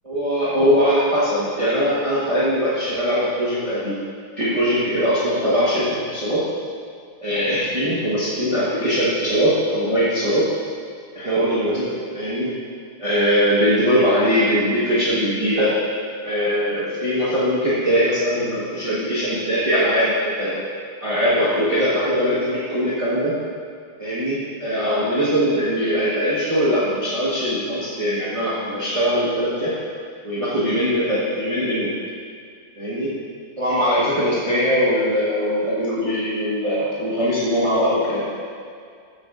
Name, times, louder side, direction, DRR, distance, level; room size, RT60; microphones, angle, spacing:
voice 1, 0.1-4.0 4.4-6.4 7.2-10.5 11.1-12.5 13.0-15.8 16.2-20.6 21.0-23.3 24.0-29.7 30.2-31.9 32.8-33.1 33.6-38.3, equal, 25° right, -10 dB, 1.3 m, -21 dB
13.0 x 7.2 x 2.5 m, 2.2 s
omnidirectional pair, 1.6 m